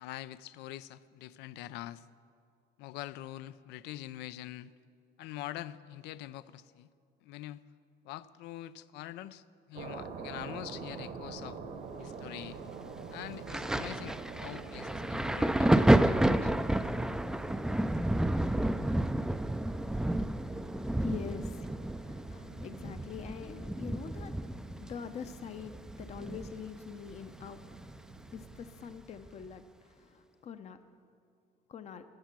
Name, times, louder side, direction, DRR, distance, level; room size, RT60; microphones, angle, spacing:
voice 1, 0.0-2.0 2.8-4.7 5.2-6.9 7.2-7.6 8.0-9.4 9.7-11.6 12.0-12.6 13.1-16.5, left 14 dB, 85° left, 16 dB, 0.4 m, -44 dB
sound 1, 9.7-29.0, right 5 dB, 70° right, 1.2 m, -47 dB
Thunder, 13.5-26.8 27.1-28.4 29.3-29.4, right 1 dB, 5° right, 0.3 m, -30 dB
voice 2, 20.8-27.8 28.3-30.8 31.7-32.0, left 7 dB, 40° left, 10 dB, 0.6 m, -45 dB
14.0 x 9.2 x 6.0 m, 2.3 s
cardioid pair, 110°, 17 cm